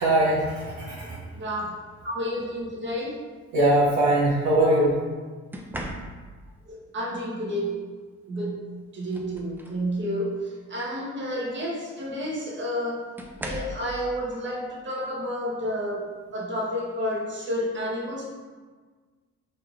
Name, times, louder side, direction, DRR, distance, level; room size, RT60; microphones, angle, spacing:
voice 1, 0.0-1.2 3.5-5.0, right 1 dB, 70° right, -5 dB, 1.0 m, -21 dB
sound 1, 0.6-0.9 2.2-2.4 5.5-6.5 8.3-8.4 8.8-9.9 10.4-10.6 12.0-12.1 13.2-13.9 15.6-15.8 16.3-16.6, right 1 dB, 5° right, 0.4 m, -39 dB
voice 2, 1.3-1.7 2.0-3.2 6.7-7.8 8.3-8.7 8.9-13.0 13.4-18.2, equal, 40° right, -5 dB, 1.1 m, -30 dB
4.6 x 3.4 x 2.4 m, 1.4 s
cardioid pair, 90°, 30 cm